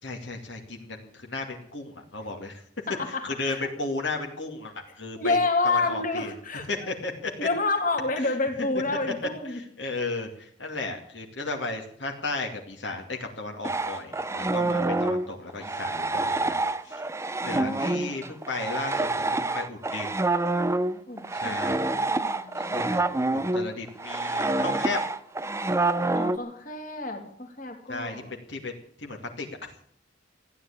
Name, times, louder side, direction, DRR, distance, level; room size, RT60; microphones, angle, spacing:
voice 1, 0.0-2.6 3.1-5.4 5.6-6.3 6.7-7.5 8.2-8.7 9.5-16.6 16.8-17.0 17.4-20.1 21.3-21.8 22.6-23.0 23.3-25.0 27.9-29.7, left 3 dB, 65° left, 2 dB, 2.5 m, -34 dB
voice 2, 2.9-3.7 5.1-6.9 7.4-9.6 17.5-18.2 21.1-21.5 21.9-22.8 26.1-28.3, left 3 dB, 45° left, 3 dB, 2.9 m, -29 dB
sound 1, 13.6-26.4, right 2 dB, 15° right, 0.6 m, -27 dB
15.0 x 10.0 x 8.6 m, 0.62 s
head